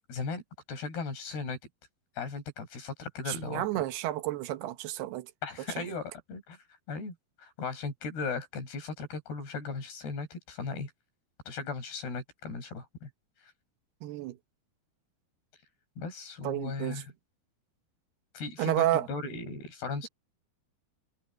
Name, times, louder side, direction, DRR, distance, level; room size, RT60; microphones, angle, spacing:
voice 1, 0.1-0.4 0.7-1.6 2.2-3.8 5.4-6.6 6.9-10.9 11.5-13.1 13.4-13.5 16.0-17.1 18.3-20.1, left 4 dB, 80° left, 7.3 m, -37 dB
voice 2, 3.3-5.3 5.7-5.8 14.0-14.4 16.4-17.0 18.6-19.1, right 14 dB, 85° right, 3.2 m, -31 dB
omnidirectional pair, 4.6 m